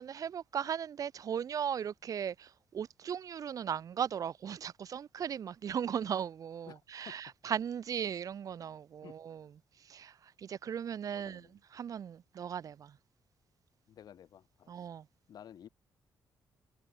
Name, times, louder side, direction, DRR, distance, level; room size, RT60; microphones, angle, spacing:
voice 1, 0.0-9.5 9.9-11.4 11.7-12.9 14.7-15.0, right 8 dB, 55° right, 1.7 m, -37 dB
voice 2, 6.7-7.3 9.0-9.2 11.1-11.6 13.9-14.9 15.3-15.7, left 9 dB, 65° left, 4.6 m, -53 dB
cardioid pair, 140°, 7 cm